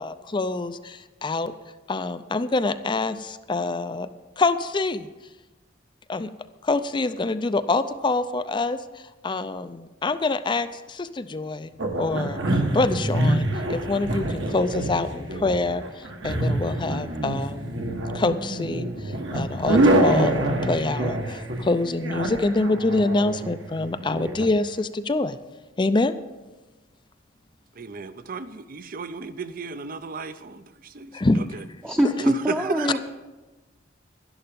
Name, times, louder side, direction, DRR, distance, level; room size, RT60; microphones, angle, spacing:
voice 1, 0.0-1.5 1.9-4.1 4.4-5.1 6.1-6.3 6.6-11.7 12.0-17.7 18.1-25.4 25.8-26.2 31.1-31.4, left 2 dB, 25° left, 12 dB, 0.4 m, -26 dB
sound 1, 11.8-24.5, right 1 dB, 70° right, 1.6 m, -26 dB
voice 2, 27.8-31.6 32.2-33.0, right 4 dB, 45° right, 13 dB, 0.6 m, -34 dB
voice 3, 31.8-33.0, equal, 10° right, 0 dB, 0.7 m, -23 dB
12.0 x 11.0 x 5.3 m, 1.2 s
head